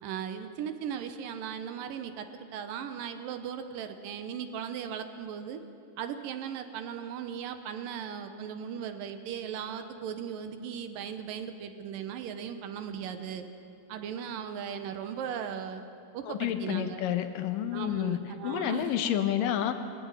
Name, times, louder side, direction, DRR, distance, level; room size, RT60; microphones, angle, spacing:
voice 1, 0.0-5.6 6.0-13.5 13.9-15.8 16.1-17.0 17.7-18.9, right 8 dB, 75° right, 8 dB, 2.5 m, -37 dB
voice 2, 16.2-18.2 18.4-19.7, left 11 dB, 75° left, 9 dB, 2.4 m, -29 dB
21.0 x 14.5 x 9.0 m, 2.6 s
omnidirectional pair, 4.2 m